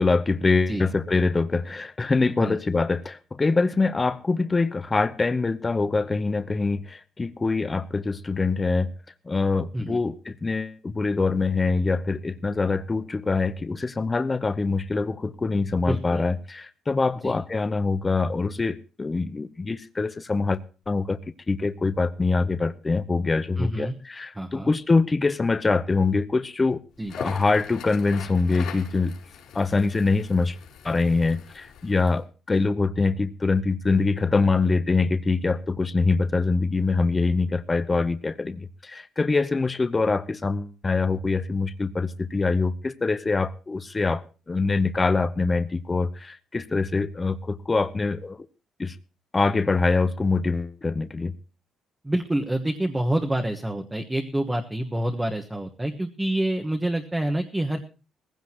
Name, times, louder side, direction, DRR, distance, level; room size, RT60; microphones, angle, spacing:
voice 1, 0.0-8.9 9.3-20.6 20.9-21.2 21.5-26.8 27.2-29.1 29.5-30.6 30.8-44.2 44.5-48.5 48.8-49.0 49.3-51.3, left 3 dB, 20° left, 0.8 m, -24 dB
voice 2, 15.9-16.2 17.2-17.4 23.6-24.0 24.3-24.7 27.0-27.1 52.0-57.8, right 1 dB, 10° right, 1.3 m, -27 dB
Crackle, 27.0-32.2, left 7 dB, 75° left, 4.0 m, -42 dB
18.5 x 15.5 x 2.9 m
cardioid pair, 140°, 0 cm